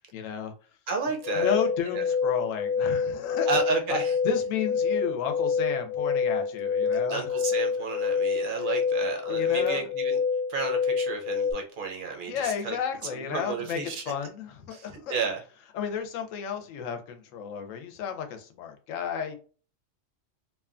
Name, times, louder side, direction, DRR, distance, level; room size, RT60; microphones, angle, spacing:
voice 1, 0.1-0.5 1.3-3.5 3.9-4.0 4.2-7.3 9.3-9.9 12.3-13.8 14.1-15.2 15.7-19.4, left 7 dB, 90° left, 6 dB, 1.0 m, -32 dB
voice 2, 0.9-1.5 1.9-2.0 3.5-4.1 6.9-10.2 10.5-12.8 13.1-14.0 14.7-15.4, right 5 dB, 55° right, 2 dB, 0.6 m, -32 dB
sound 1, 1.2-11.5, left 5 dB, 50° left, 1.0 m, -27 dB
2.9 x 2.2 x 2.4 m, 0.38 s
omnidirectional pair, 1.3 m